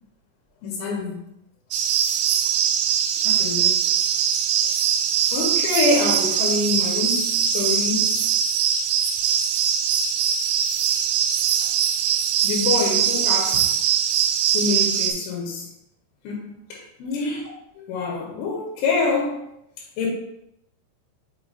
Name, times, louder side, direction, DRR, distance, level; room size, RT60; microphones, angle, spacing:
voice 1, 0.6-1.1 3.2-3.9 5.3-8.3 12.4-13.8 14.5-15.7 16.2-16.6 17.0-17.4 17.8-19.4 20.0-20.1, left 4 dB, 85° left, -3 dB, 3.4 m, -25 dB
sound 1, 1.7-15.1, right 9 dB, 80° right, 2.7 m, -22 dB
6.7 x 5.8 x 2.5 m, 0.80 s
omnidirectional pair, 5.2 m